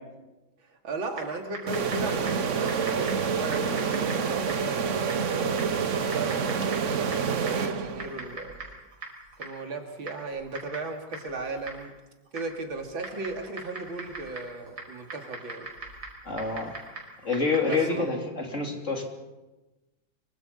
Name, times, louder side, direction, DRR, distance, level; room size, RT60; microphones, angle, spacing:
voice 1, 0.8-5.6 6.1-8.5 9.4-11.9 12.3-15.7 17.6-18.1, right 2 dB, 85° right, 4 dB, 3.3 m, -36 dB
Typing, 1.1-18.0, right 3 dB, 65° right, 5.9 m, -43 dB
sound 1, 1.7-8.3, right 6 dB, 45° right, 1.2 m, -28 dB
voice 2, 16.2-16.7 17.2-19.0, left 3 dB, 40° left, 2 dB, 3.3 m, -27 dB
25.5 x 24.5 x 5.5 m, 1.1 s
omnidirectional pair, 2.1 m